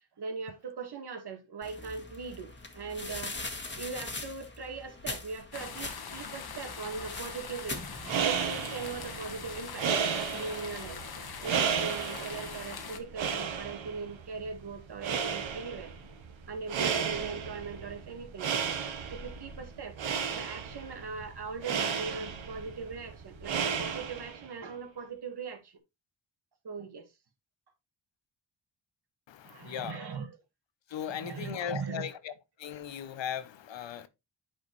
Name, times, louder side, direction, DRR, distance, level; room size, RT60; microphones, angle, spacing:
voice 1, 0.2-3.4 3.7-7.8 8.2-11.0 11.4-15.9 16.5-18.6 19.1-20.0 20.3-25.8 26.6-27.1 29.4-30.4 31.1-32.1, right 5 dB, 55° right, 2.0 m, -40 dB
sound 1, 1.6-8.5, left 2 dB, 25° left, 1.8 m, -42 dB
sound 2, 5.5-13.0, left 6 dB, 50° left, 1.5 m, -42 dB
sound 3, 7.9-24.5, right 7 dB, 80° right, 1.4 m, -34 dB
voice 2, 29.3-30.1 30.9-32.3 32.6-34.1, left 9 dB, 70° left, 1.0 m, -37 dB
8.7 x 4.7 x 3.2 m
cardioid pair, 70°, 46 cm